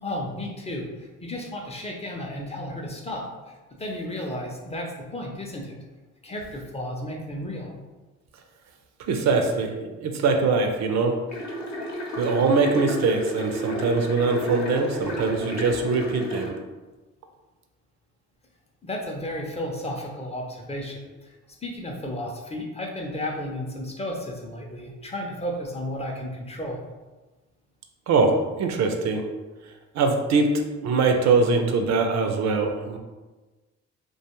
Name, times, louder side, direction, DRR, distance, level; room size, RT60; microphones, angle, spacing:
voice 1, 0.0-5.8 6.2-7.7 18.8-21.3 21.6-26.8, left 1 dB, 20° left, 0 dB, 0.4 m, -33 dB
voice 2, 9.0-11.2 12.2-16.5 28.1-29.3 29.9-30.5 30.8-33.0, right 4 dB, 65° right, 4 dB, 0.4 m, -22 dB
sound 1, 11.3-16.5, equal, 65° left, 0.7 m, -32 dB
2.4 x 2.2 x 2.9 m, 1.2 s
cardioid pair, 90°, 30 cm